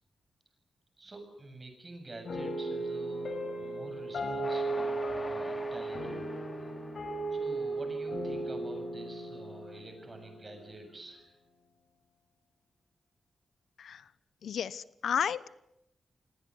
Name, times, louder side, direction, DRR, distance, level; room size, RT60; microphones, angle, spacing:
voice 1, 1.0-6.3 6.6-6.7 7.3-11.4, right 2 dB, 25° right, 6 dB, 7.3 m, -48 dB
sound 1, 2.3-10.8, right 2 dB, 60° left, 7.1 m, -36 dB
Train, 4.4-8.8, left 1 dB, 15° left, 3.4 m, -47 dB
voice 2, 14.4-15.5, left 8 dB, 80° left, 17 dB, 0.9 m, -32 dB
28.0 x 19.5 x 9.8 m, 0.82 s
wide cardioid pair, 135°, 0 cm